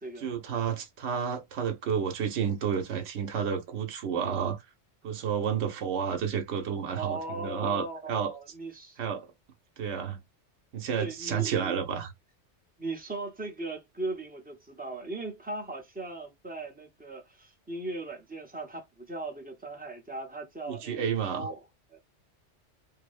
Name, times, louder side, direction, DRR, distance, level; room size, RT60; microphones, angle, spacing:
voice 1, 0.2-4.6 5.0-8.3 9.0-9.3 9.8-10.2 10.7-12.1 20.7-21.5, right 7 dB, 75° right, 1.0 m, -31 dB
voice 2, 6.9-9.0 11.0-11.9 12.8-21.6 21.9-22.0, right 2 dB, 10° right, 0.6 m, -38 dB
2.7 x 2.0 x 2.4 m
omnidirectional pair, 1.2 m